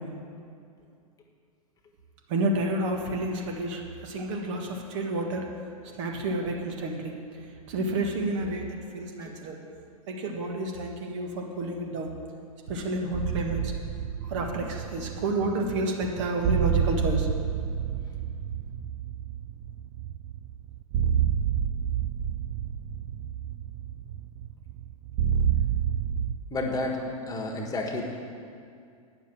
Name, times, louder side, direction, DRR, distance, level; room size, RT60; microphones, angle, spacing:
voice 1, 2.3-5.5 6.0-7.1 7.7-9.6 10.1-12.1 12.7-13.7 14.3-17.3, right 1 dB, 55° right, 2 dB, 1.7 m, -30 dB
sound 1, 13.1-26.4, right 9 dB, 40° right, 0.5 m, -29 dB
voice 2, 26.5-27.0 27.3-28.0, left 2 dB, 20° left, 1 dB, 1.4 m, -30 dB
9.2 x 6.8 x 7.7 m, 2.3 s
hypercardioid pair, 110°, 19 cm